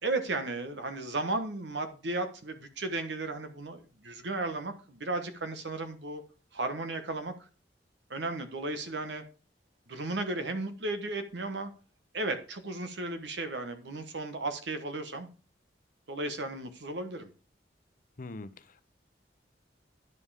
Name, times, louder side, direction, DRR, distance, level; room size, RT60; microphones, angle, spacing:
voice 1, 0.0-6.2 6.5-7.3 8.1-9.2 9.9-11.7 12.1-15.3 16.1-17.3, right 2 dB, 80° right, 9 dB, 1.1 m, -34 dB
voice 2, 18.2-18.8, left 2 dB, 50° left, 13 dB, 0.7 m, -43 dB
9.5 x 5.5 x 4.8 m, 0.36 s
head